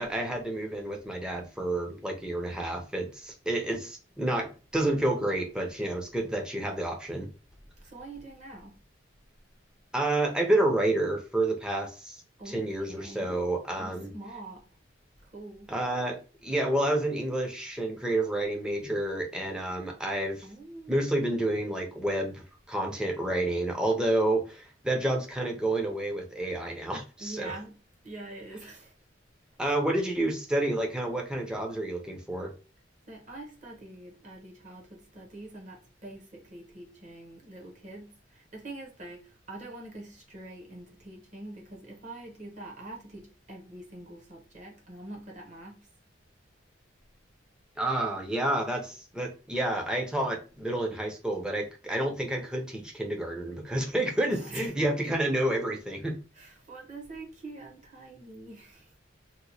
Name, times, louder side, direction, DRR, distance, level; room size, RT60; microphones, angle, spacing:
voice 1, 0.0-7.3 9.9-14.1 15.7-20.5 20.9-27.6 29.6-32.5 47.8-56.2, right 1 dB, 5° right, 0.5 m, -29 dB
voice 2, 7.8-8.8 12.4-13.4 13.8-14.7 15.2-15.7 20.4-21.2 27.2-27.8 28.0-28.9 29.6-29.7 33.1-45.9 54.2-54.7 56.3-58.9, right 2 dB, 40° right, 0.9 m, -45 dB
3.0 x 2.1 x 4.0 m
head